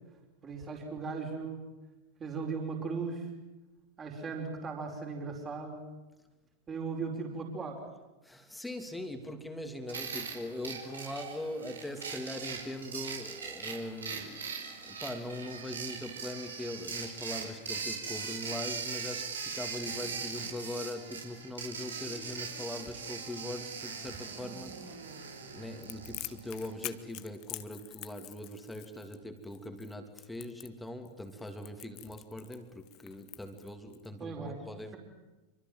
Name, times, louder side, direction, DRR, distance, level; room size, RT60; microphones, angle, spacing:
voice 1, 0.4-1.6 2.2-3.3 4.0-5.9 6.7-7.8 34.2-34.6, right 4 dB, 20° right, 2 dB, 5.0 m, -37 dB
voice 2, 8.2-14.4 14.8-35.0, left 1 dB, 5° left, 6 dB, 3.0 m, -41 dB
sound 1, 9.9-26.9, right 5 dB, 70° right, 4.7 m, -40 dB
Crackle, 25.8-34.1, left 18 dB, 40° left, 1.3 m, -46 dB
27.5 x 25.0 x 7.7 m, 1.1 s
figure-of-eight pair, 90°, 0 cm